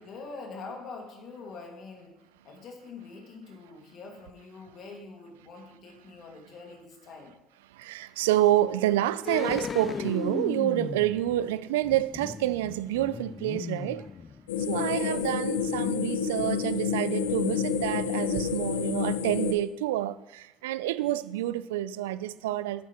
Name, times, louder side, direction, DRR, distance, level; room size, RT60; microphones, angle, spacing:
voice 1, 0.0-2.2 2.4-7.4 14.7-15.3, left 4 dB, 55° left, 2.0 m, -44 dB
voice 2, 7.8-14.1 14.7-22.9, right 14 dB, 80° right, 0.3 m, -28 dB
sound 1, 9.3-14.7 15.0-15.1, left 6 dB, 40° left, 0.4 m, -36 dB
sound 2, 14.5-19.5, left 7 dB, 90° left, 0.6 m, -29 dB
8.3 x 8.2 x 3.0 m
hypercardioid pair, 65°, 0 cm